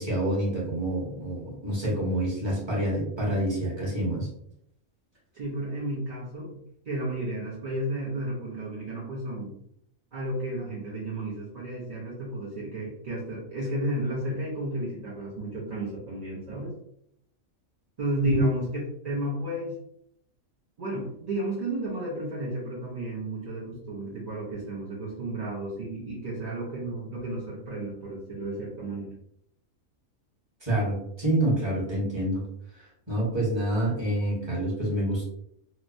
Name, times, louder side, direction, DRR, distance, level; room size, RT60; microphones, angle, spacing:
voice 1, 0.0-4.3 18.2-18.4 30.6-32.4 32.7-35.2, right 1 dB, 20° right, -6 dB, 1.0 m, -27 dB
voice 2, 5.3-9.5 10.1-16.7 18.0-19.8 20.8-29.1, right 1 dB, 45° right, -7 dB, 0.5 m, -32 dB
2.9 x 2.1 x 2.5 m, 0.73 s
omnidirectional pair, 1.5 m